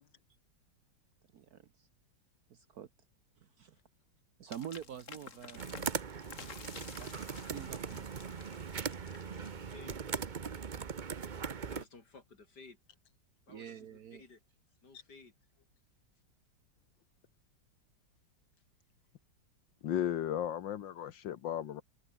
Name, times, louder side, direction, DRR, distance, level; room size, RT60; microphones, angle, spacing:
voice 1, 1.3-1.9 2.5-2.9 3.6-3.8 4.4-5.7 7.0-8.1 13.5-14.2, right 9 dB, 60° right, 1.3 m, -46 dB
sound 1, 4.5-10.0, left 5 dB, 45° left, 2.1 m, -52 dB
sound 2, 5.6-11.8, right 6 dB, 40° right, 0.6 m, -40 dB
voice 2, 9.3-10.4 11.6-12.8 13.5-14.4 14.8-15.3, left 4 dB, 60° left, 3.7 m, -56 dB
voice 3, 19.8-21.8, left 10 dB, 80° left, 1.8 m, -35 dB
open air
omnidirectional pair, 2.0 m